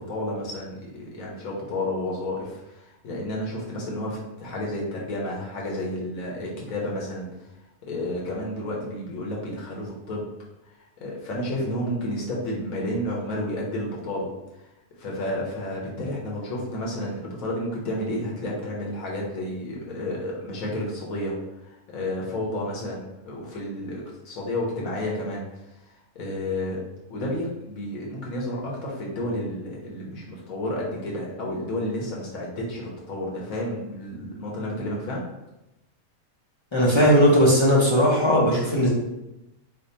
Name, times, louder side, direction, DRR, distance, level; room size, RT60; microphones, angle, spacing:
voice 1, 0.0-7.5 7.8-10.3 11.0-14.3 15.0-21.4 21.6-25.4 25.8-26.8 27.1-35.2, left 1 dB, 70° left, -3 dB, 1.3 m, -31 dB
voice 2, 36.7-38.9, equal, 30° left, -6 dB, 0.5 m, -18 dB
3.4 x 2.1 x 4.1 m, 0.94 s
omnidirectional pair, 1.6 m